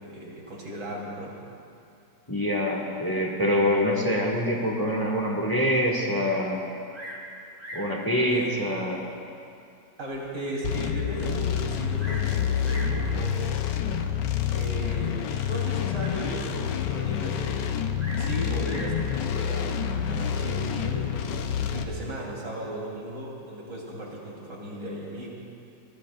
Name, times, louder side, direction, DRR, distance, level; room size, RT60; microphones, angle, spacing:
voice 1, 0.0-1.3 8.3-8.6 10.0-13.6 14.5-17.9 18.2-21.1 21.5-25.3, right 1 dB, 80° right, -4 dB, 4.0 m, -36 dB
voice 2, 2.3-6.6 7.7-9.0 18.4-18.6, equal, 15° left, -2 dB, 1.5 m, -25 dB
Bird vocalization bird call bird song, 6.9-7.3 7.6-8.0 8.8-8.9 9.5-9.6 10.1-10.2 10.4-10.5 11.6-12.3 12.6-13.0 14.0-14.3 18.0-19.0 20.1-20.5, equal, 30° right, 2.9 m, -41 dB
sound 1, 10.6-21.8, left 8 dB, 85° left, 1.4 m, -28 dB
23.5 x 20.5 x 2.4 m, 2.5 s
omnidirectional pair, 1.8 m